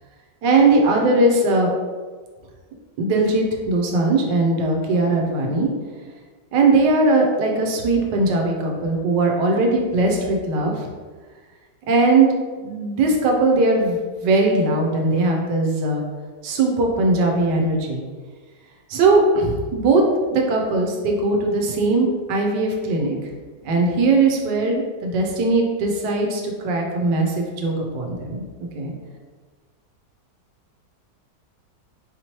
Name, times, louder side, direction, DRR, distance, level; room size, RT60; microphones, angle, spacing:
voice 1, 0.4-1.7 3.0-5.7 6.5-10.9 11.9-12.4 12.6-16.0 16.4-18.0 18.9-23.1 23.6-28.9, right 2 dB, 85° right, 1 dB, 1.3 m, -19 dB
4.5 x 2.8 x 3.0 m, 1.4 s
omnidirectional pair, 1.9 m